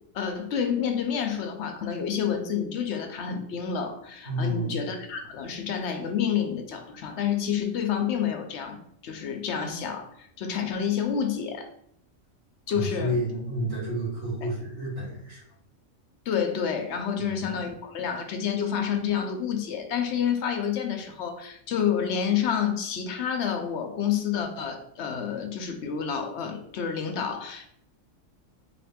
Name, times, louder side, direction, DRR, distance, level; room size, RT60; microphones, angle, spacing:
voice 1, 0.1-8.8 9.0-10.1 10.4-11.7 12.7-13.2 14.4-14.5 16.3-27.7, left 7 dB, 70° left, 5 dB, 0.8 m, -29 dB
voice 2, 4.3-4.7 12.7-15.4 17.3-17.5, equal, 60° right, -6 dB, 2.1 m, -30 dB
3.9 x 2.5 x 3.5 m, 0.69 s
omnidirectional pair, 1.3 m